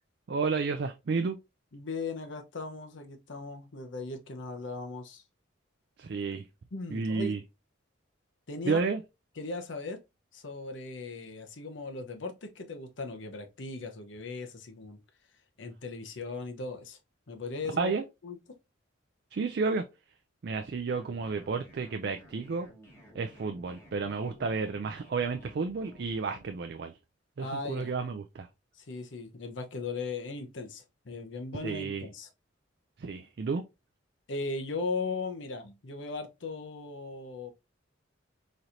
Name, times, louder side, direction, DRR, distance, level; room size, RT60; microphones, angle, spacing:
voice 1, 0.3-1.4 6.0-6.5 6.9-7.4 8.7-9.0 17.7-18.0 19.3-19.8 20.4-22.7 23.1-26.9 27.4-28.5 31.6-32.0 33.0-33.6, right 4 dB, 55° right, 0.4 m, -31 dB
voice 2, 1.7-5.2 6.7-7.4 8.5-8.9 9.4-10.0 10.3-15.0 15.6-17.0 17.3-18.0 18.2-18.4 27.4-27.9 28.8-32.3 34.3-37.5, left 3 dB, 70° left, 0.8 m, -38 dB
sound 1, 20.9-26.6, equal, 15° left, 1.2 m, -54 dB
4.2 x 3.1 x 2.5 m
head